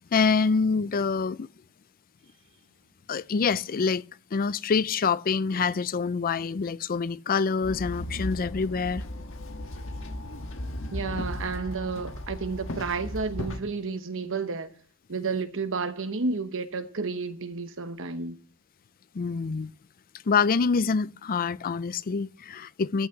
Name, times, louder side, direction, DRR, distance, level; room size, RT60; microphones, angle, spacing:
voice 1, 0.1-1.5 3.1-4.0 4.3-9.0 19.1-19.7 20.3-23.1, left 5 dB, 40° left, 0.4 m, -26 dB
Walk footsteps / Chatter / Hiss, 7.6-13.6, left 1 dB, 65° left, 1.4 m, -36 dB
voice 2, 10.9-14.7 15.1-18.4, right 4 dB, 60° right, 1.1 m, -31 dB
14.0 x 6.4 x 5.8 m
head